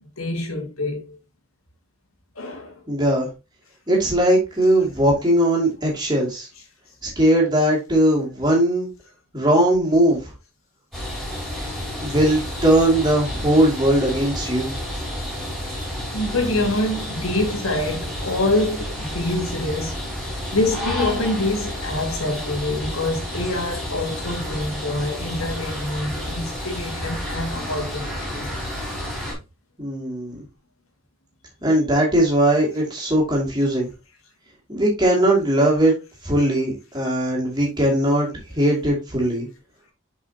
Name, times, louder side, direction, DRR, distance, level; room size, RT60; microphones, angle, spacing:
voice 1, 0.2-1.2 2.4-2.8 7.2-7.3 16.1-20.0 20.5-28.5, left 2 dB, 80° left, 2.0 m, -26 dB
voice 2, 2.9-3.3 3.9-6.5 7.0-8.9 9.3-10.3 12.0-14.7 29.8-30.4 31.6-33.9 34.7-35.9 36.2-38.3 38.5-39.5, right 1 dB, 20° right, 2.5 m, -19 dB
sound 1, 10.9-29.3, equal, ahead, 4.1 m, -30 dB
7.3 x 5.0 x 2.9 m
head